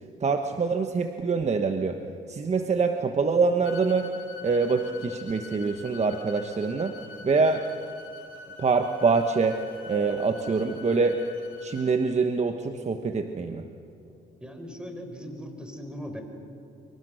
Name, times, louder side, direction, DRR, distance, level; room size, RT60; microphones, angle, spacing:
voice 1, 0.2-2.0 2.3-4.1 4.4-6.9 7.2-7.6 8.6-9.6 9.9-11.2 11.6-13.6, right 4 dB, 35° right, 6 dB, 1.2 m, -25 dB
sound 1, 3.6-11.9, left 4 dB, 85° left, 4.5 m, -45 dB
voice 2, 14.4-16.2, equal, 5° right, 4 dB, 4.5 m, -39 dB
26.5 x 24.0 x 6.4 m, 2.7 s
cardioid pair, 90°, 20 cm